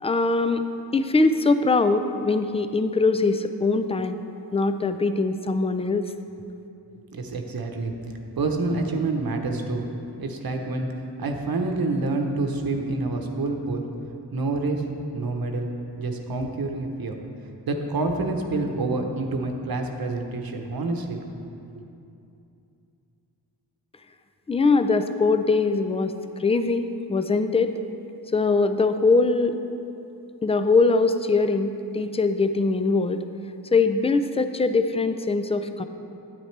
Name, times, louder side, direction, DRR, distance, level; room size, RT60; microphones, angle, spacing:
voice 1, 0.0-0.6 0.9-4.2 4.5-6.1 24.5-26.1 26.4-27.7 28.3-29.5 30.4-33.2 33.7-35.8, left 3 dB, 15° left, 9 dB, 0.4 m, -22 dB
voice 2, 7.1-7.9 8.4-9.8 10.2-10.9 11.2-13.9 14.3-14.8 15.1-15.7 16.0-17.2 17.7-21.2, right 3 dB, 55° right, 4 dB, 1.0 m, -27 dB
9.4 x 8.5 x 3.3 m, 2.7 s
cardioid pair, 60°, 42 cm